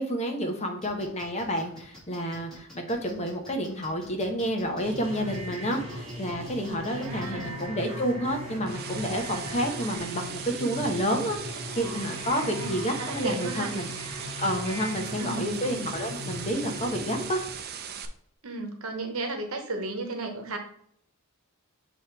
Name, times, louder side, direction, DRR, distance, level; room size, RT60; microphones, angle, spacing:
voice 1, 0.0-13.9 14.4-17.4, equal, 30° left, 3 dB, 1.0 m, -30 dB
sound 1, 0.8-7.7, left 1 dB, ahead, 2.3 m, -49 dB
sound 2, 4.8-17.3, equal, 30° right, 1.4 m, -38 dB
voice 2, 6.9-7.6 12.4-12.7 13.0-13.7 15.2-15.5 18.4-20.6, right 3 dB, 70° right, 5 dB, 1.0 m, -34 dB
sound 3, 8.3-18.1, right 8 dB, 45° right, 0.6 m, -39 dB
7.1 x 3.0 x 4.6 m, 0.67 s
head